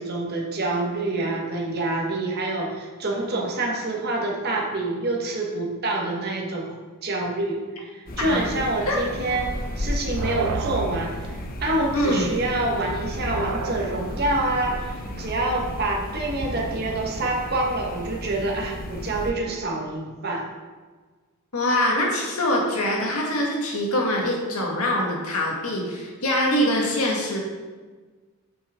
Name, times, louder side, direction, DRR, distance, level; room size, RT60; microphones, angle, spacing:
voice 1, 0.0-6.7 7.0-20.4, right 2 dB, 50° right, -1 dB, 1.5 m, -27 dB
sound 1, 8.1-19.3, left 1 dB, 40° left, 0.8 m, -34 dB
sound 2, 9.3-17.4, right 4 dB, 80° right, 0.6 m, -35 dB
voice 2, 11.9-12.3 21.5-27.4, left 1 dB, 85° left, -2 dB, 1.9 m, -24 dB
8.6 x 6.0 x 3.8 m, 1.4 s
head